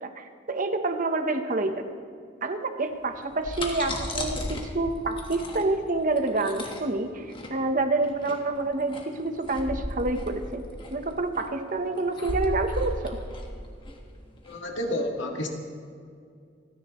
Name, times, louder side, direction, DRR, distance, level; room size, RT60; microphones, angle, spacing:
voice 1, 0.0-1.9 2.4-10.6 10.9-13.2, right 2 dB, 45° right, 7 dB, 1.0 m, -28 dB
sound 1, 3.1-14.6, left 1 dB, 25° left, 1.5 m, -35 dB
voice 2, 14.5-15.5, left 1 dB, 80° left, 2 dB, 1.8 m, -30 dB
27.5 x 10.0 x 3.1 m, 2.3 s
head